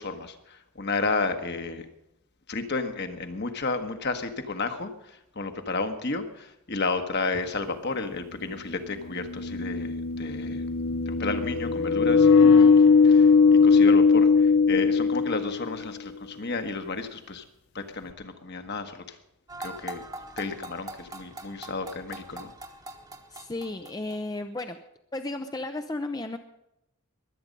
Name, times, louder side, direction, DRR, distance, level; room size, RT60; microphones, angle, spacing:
voice 1, 0.0-1.9 2.5-10.7 11.0-13.3 13.6-17.4 17.7-19.2 19.6-20.0 20.4-22.5, left 3 dB, 50° left, 7 dB, 1.3 m, -32 dB
sound 1, 7.4-7.5 9.0-15.8, left 5 dB, 65° left, 0.8 m, -19 dB
voice 2, 12.4-12.8 23.3-24.8 25.1-26.4, left 2 dB, 15° left, 7 dB, 0.6 m, -34 dB
sound 2, 19.5-24.4, right 1 dB, 15° right, 1.1 m, -42 dB
22.5 x 8.8 x 5.3 m, 0.84 s
head